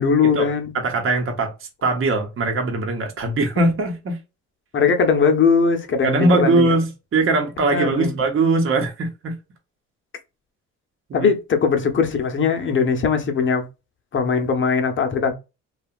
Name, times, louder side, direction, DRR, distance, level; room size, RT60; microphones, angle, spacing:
voice 1, 0.0-0.7 4.7-6.7 7.7-8.1 11.1-13.6 14.1-15.3, left 5 dB, 40° left, 0.8 m, -20 dB
voice 2, 0.7-4.2 6.0-9.3 11.1-11.3, right 2 dB, 45° right, 0.9 m, -21 dB
2.8 x 2.3 x 2.4 m
cardioid pair, 90°, 30 cm